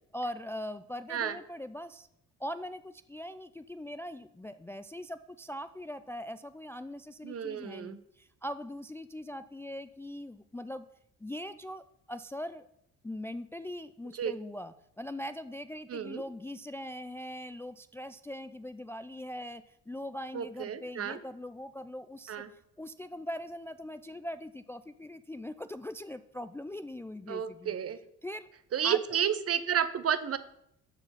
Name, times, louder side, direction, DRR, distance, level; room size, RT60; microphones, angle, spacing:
voice 1, 0.1-2.1 2.4-10.9 11.2-12.7 13.0-22.4 22.8-27.8 28.2-28.5 28.8-29.0, left 1 dB, 5° left, 11 dB, 0.4 m, -41 dB
voice 2, 7.2-8.0 14.1-14.3 15.9-16.2 20.3-21.2 22.3-22.5 27.3-28.0 28.7-30.4, right 8 dB, 40° right, 13 dB, 0.8 m, -31 dB
13.0 x 4.9 x 5.6 m, 0.78 s
hypercardioid pair, 50°, 35 cm